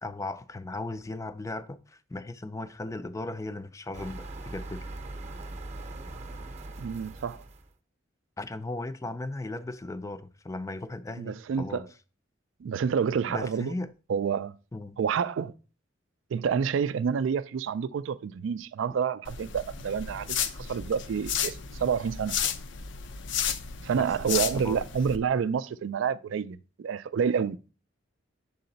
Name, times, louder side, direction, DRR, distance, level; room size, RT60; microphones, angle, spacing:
voice 1, 0.0-4.9 8.4-11.9 13.3-13.9 14.7-15.0 23.9-24.8, left 2 dB, 15° left, 0.4 m, -37 dB
sound 1, 3.9-7.7, right 2 dB, 35° right, 0.7 m, -41 dB
voice 2, 6.8-7.4 11.2-11.8 12.6-13.7 14.1-14.5 15.0-15.5 16.3-22.4 23.8-27.6, right 6 dB, 75° right, 0.3 m, -28 dB
sound 2, 19.2-25.2, left 8 dB, 65° left, 0.5 m, -33 dB
6.7 x 3.9 x 3.9 m
head